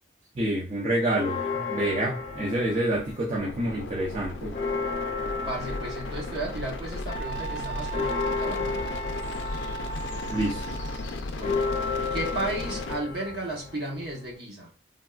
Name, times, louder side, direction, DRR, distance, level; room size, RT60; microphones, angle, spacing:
voice 1, 0.3-4.6 10.3-10.6, right 1 dB, 35° right, 0.6 m, -27 dB
sound 1, 1.1-3.5 3.9-14.3, left 4 dB, 45° left, 0.7 m, -33 dB
sound 2, 3.4-13.0, left 2 dB, 85° left, 0.4 m, -36 dB
voice 2, 5.5-8.8 11.3-11.7 12.1-14.7, right 1 dB, 60° right, 1.1 m, -34 dB
Wind instrument woodwind instrument, 7.1-11.2, right 5 dB, 10° left, 0.7 m, -37 dB
3.4 x 2.2 x 2.4 m
head